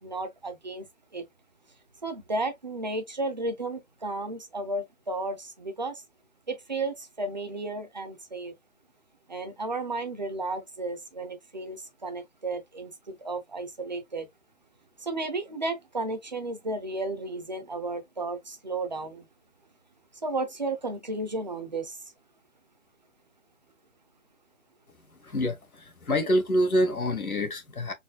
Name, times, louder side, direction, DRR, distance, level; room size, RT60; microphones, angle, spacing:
voice 1, 0.0-1.2 2.0-6.0 6.5-8.5 9.3-14.3 15.0-19.3 20.2-22.0, right 2 dB, 35° right, 0.6 m, -33 dB
voice 2, 25.2-27.9, equal, 90° left, 1.5 m, -26 dB
4.1 x 3.1 x 2.2 m
figure-of-eight pair, 165°, 42 cm